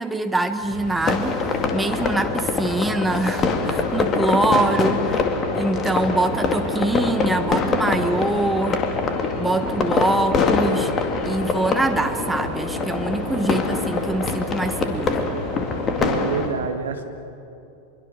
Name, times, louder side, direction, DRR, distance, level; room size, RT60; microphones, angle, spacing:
voice 1, 0.0-5.2 5.5-8.9 9.3-10.9 11.2-15.3, right 2 dB, 5° right, 7 dB, 1.4 m, -24 dB
sound 1, 0.6-16.5, right 3 dB, 45° right, 6.1 m, -36 dB
sound 2, 1.0-16.5, left 4 dB, 25° left, 2.2 m, -24 dB
voice 2, 16.0-17.0, right 5 dB, 65° right, 6 dB, 1.8 m, -27 dB
25.5 x 23.0 x 6.4 m, 2.7 s
figure-of-eight pair, 90°, 0 cm